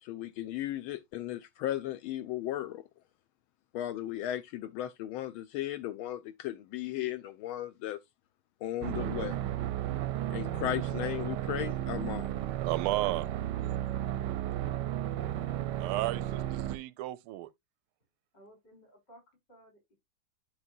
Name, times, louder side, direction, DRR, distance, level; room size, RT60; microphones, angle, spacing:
voice 1, 0.0-2.8 3.7-8.0 8.6-9.4 10.3-12.3, left 13 dB, 80° left, 1.4 m, -36 dB
sound 1, 8.8-16.8, right 12 dB, 70° right, 1.0 m, -34 dB
voice 2, 12.6-13.3 15.8-17.5, right 16 dB, 85° right, 1.5 m, -33 dB
voice 3, 15.2-15.8 18.3-19.9, equal, 55° left, 4.3 m, -57 dB
11.0 x 4.8 x 2.6 m
omnidirectional pair, 2.3 m